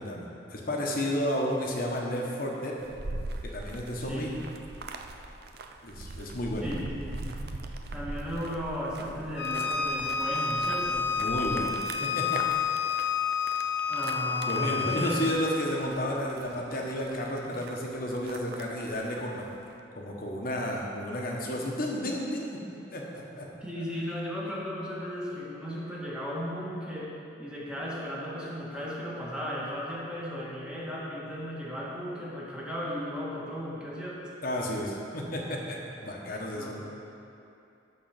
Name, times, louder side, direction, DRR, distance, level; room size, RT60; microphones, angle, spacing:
voice 1, 0.0-2.8 3.4-4.3 5.8-6.7 11.2-12.8 14.5-19.5 19.9-22.6 22.9-23.5 34.4-36.8, equal, 50° left, -1 dB, 1.3 m, -32 dB
sound 1, 2.8-19.7, right 2 dB, 55° right, 0.5 m, -41 dB
voice 2, 4.1-4.6 6.6-7.1 7.9-11.1 13.9-15.5 23.6-34.2 36.6-36.8, equal, 5° right, -6 dB, 1.5 m, -36 dB
Bowed string instrument, 9.4-15.4, left 6 dB, 75° left, 0.8 m, -29 dB
12.5 x 4.2 x 5.8 m, 2.7 s
head